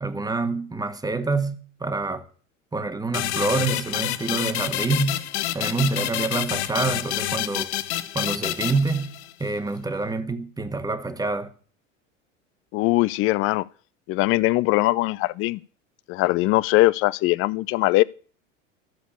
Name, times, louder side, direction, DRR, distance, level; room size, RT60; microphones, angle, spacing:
voice 1, 0.0-2.2 2.7-5.2 5.5-7.7 8.1-9.1 9.4-11.5, right 3 dB, 10° right, 1.5 m, -26 dB
sound 1, 3.1-9.5, left 14 dB, 60° left, 1.0 m, -28 dB
voice 2, 12.7-13.7 14.1-15.6 16.1-18.0, left 19 dB, 35° left, 0.6 m, -21 dB
13.5 x 7.2 x 8.4 m
figure-of-eight pair, 75°, 38 cm